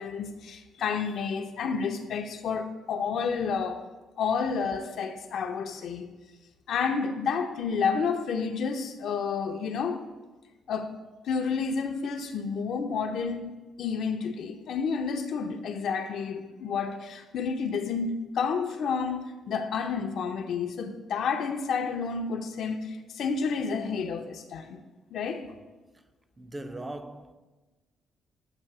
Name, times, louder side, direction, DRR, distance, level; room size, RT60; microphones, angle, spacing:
voice 1, 0.0-3.8 4.2-6.1 6.7-10.0 10.7-11.0 11.2-24.8 25.1-25.5, left 5 dB, 70° left, 0.5 m, -30 dB
voice 2, 26.4-27.3, right 1 dB, 20° right, 0.4 m, -39 dB
7.5 x 2.7 x 5.9 m
cardioid pair, 90°, 0 cm